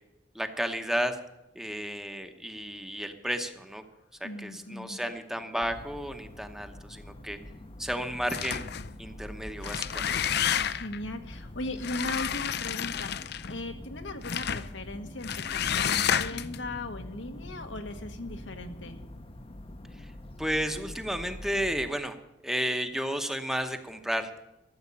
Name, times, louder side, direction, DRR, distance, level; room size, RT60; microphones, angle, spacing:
voice 1, 0.3-1.2 1.5-3.8 4.2-7.4 7.8-8.6 9.0-10.2 20.0-20.1 20.4-22.2 22.4-24.3, equal, 5° right, 6 dB, 0.9 m, -32 dB
voice 2, 4.2-5.0 10.7-19.0, left 2 dB, 80° left, 6 dB, 1.4 m, -38 dB
sound 1, 5.6-21.9, left 1 dB, 30° left, 0.8 m, -44 dB
sound 2, 8.3-8.9 9.5-11.0 11.8-13.6 14.2-14.7 15.2-16.6, left 9 dB, 60° left, 0.5 m, -30 dB
13.5 x 7.9 x 8.5 m, 0.93 s
head